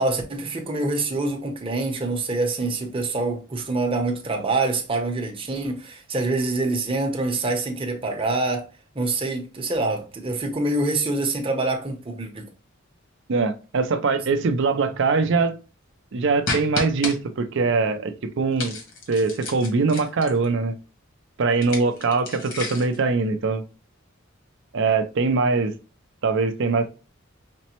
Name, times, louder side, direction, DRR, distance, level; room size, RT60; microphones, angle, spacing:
voice 1, 0.0-8.7 8.9-12.5, right 2 dB, 25° right, 0.7 m, -25 dB
voice 2, 13.3-15.6 16.1-18.8 19.1-20.7 21.4-23.6 24.7-25.7 26.2-26.9, right 4 dB, 65° right, 0.5 m, -22 dB
sound 1, 16.5-17.2 18.6-20.5 21.5-23.0, left 2 dB, 65° left, 1.3 m, -31 dB
5.1 x 2.1 x 2.8 m
head